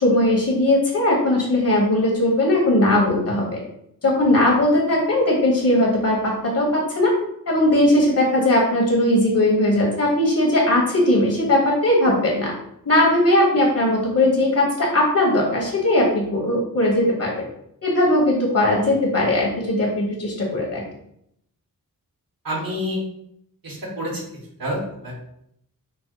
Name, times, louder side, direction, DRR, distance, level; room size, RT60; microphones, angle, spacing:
voice 1, 0.0-3.4 4.0-7.1 7.5-12.5 12.8-17.3 17.8-20.8, left 1 dB, 60° left, -3 dB, 1.4 m, -19 dB
voice 2, 22.4-23.0 23.6-24.2 24.6-25.2, equal, 70° right, -2 dB, 1.6 m, -28 dB
5.4 x 2.1 x 4.6 m, 0.73 s
wide cardioid pair, 90°, 35 cm